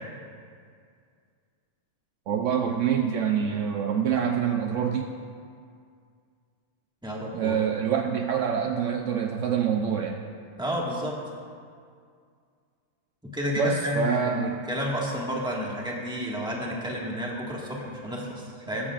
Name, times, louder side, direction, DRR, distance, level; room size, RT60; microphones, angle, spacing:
voice 1, 2.3-5.1 7.3-10.2 13.6-14.6, right 7 dB, 65° right, 3 dB, 0.9 m, -26 dB
voice 2, 7.0-7.6 10.6-11.2 13.3-18.9, equal, 5° right, -4 dB, 1.6 m, -31 dB
14.0 x 14.0 x 2.5 m, 2.2 s
omnidirectional pair, 1.4 m